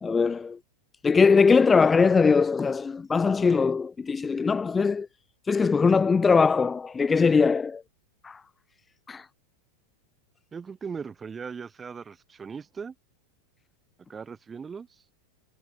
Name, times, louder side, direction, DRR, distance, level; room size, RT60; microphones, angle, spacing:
voice 1, 0.0-0.6 1.0-5.1 5.5-7.8 8.2-8.4 9.1-9.3, left 5 dB, 15° left, 0.9 m, -21 dB
voice 2, 10.5-12.9 14.1-14.9, right 6 dB, 15° right, 2.5 m, -38 dB
figure-of-eight pair, 90°, 0 cm